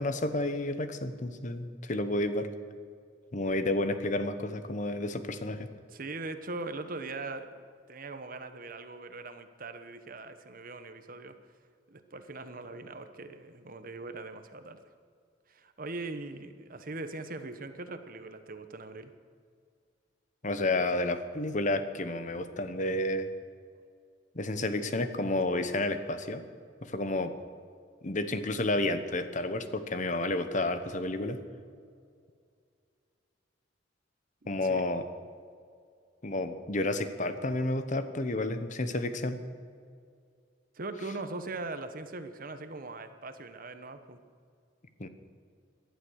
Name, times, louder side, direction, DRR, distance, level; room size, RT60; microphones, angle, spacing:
voice 1, 0.0-2.5 3.3-5.7 20.4-23.3 24.3-26.4 26.8-27.3 28.0-31.4 34.5-35.0 36.2-39.4 45.0-45.1, left 2 dB, 40° left, 10 dB, 1.0 m, -31 dB
voice 2, 5.9-11.3 11.9-14.8 15.5-19.1 34.4-34.8 40.7-44.2, right 3 dB, 50° right, 9 dB, 1.1 m, -41 dB
18.5 x 11.5 x 6.4 m, 2.2 s
head